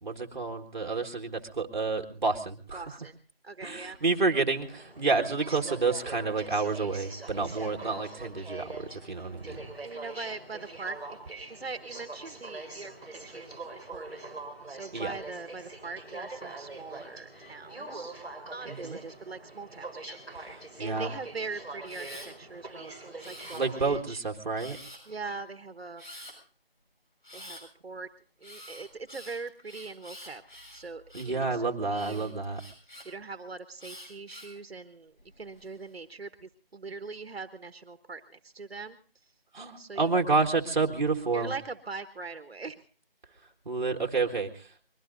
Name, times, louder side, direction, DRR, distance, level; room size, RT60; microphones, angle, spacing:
voice 1, 0.0-3.0 3.6-9.6 14.9-15.1 18.7-19.0 20.4-20.5 20.8-21.1 23.5-24.8 31.1-32.6 39.5-41.5 43.7-44.7, right 4 dB, 50° right, 3 dB, 1.7 m, -29 dB
voice 2, 2.7-3.1 3.4-4.0 9.8-11.2 11.5-14.3 14.7-18.2 18.5-20.5 20.8-22.9 23.2-24.2 25.1-26.0 27.3-27.6 27.8-28.1 28.4-30.4 30.7-32.4 33.0-39.0 39.8-40.1 41.3-42.8, right 4 dB, 80° right, 10 dB, 1.3 m, -41 dB
Aircraft, 4.6-24.0, right 2 dB, 5° left, 2.0 m, -43 dB
Camera, 21.8-22.3 23.2-23.9 24.6-25.1 26.0-26.3 27.2-27.6 28.4-31.4 31.9-33.1 33.8-34.6 35.2-35.7, left 1 dB, 55° left, 7.1 m, -47 dB
24.5 x 21.5 x 2.6 m, 0.39 s
figure-of-eight pair, 180°, 30 cm